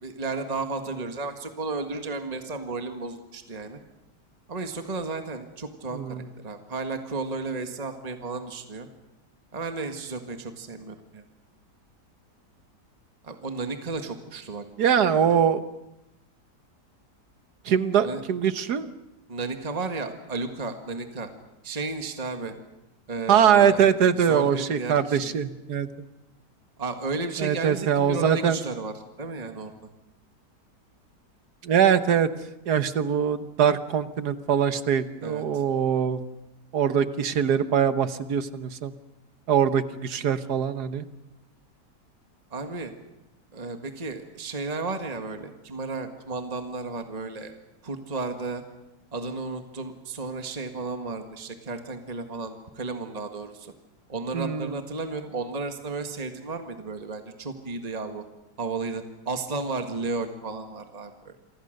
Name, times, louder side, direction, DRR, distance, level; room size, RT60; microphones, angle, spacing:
voice 1, 0.0-3.8 4.5-8.9 9.5-11.2 13.2-14.6 15.2-15.4 18.0-18.2 19.3-21.3 21.6-22.5 23.1-25.4 26.8-28.9 29.2-29.7 35.2-35.6 42.5-42.9 43.5-47.5 47.8-48.6 49.1-53.7 54.1-58.2 58.6-61.4, right 3 dB, 25° right, 6 dB, 1.8 m, -33 dB
voice 2, 5.9-6.2 14.8-15.6 17.6-18.9 23.3-25.9 27.4-28.6 31.6-32.3 32.7-36.2 36.7-38.9 39.5-41.1 54.3-54.7, right 8 dB, 70° right, 12 dB, 1.7 m, -22 dB
28.5 x 24.5 x 6.6 m, 0.91 s
omnidirectional pair, 1.8 m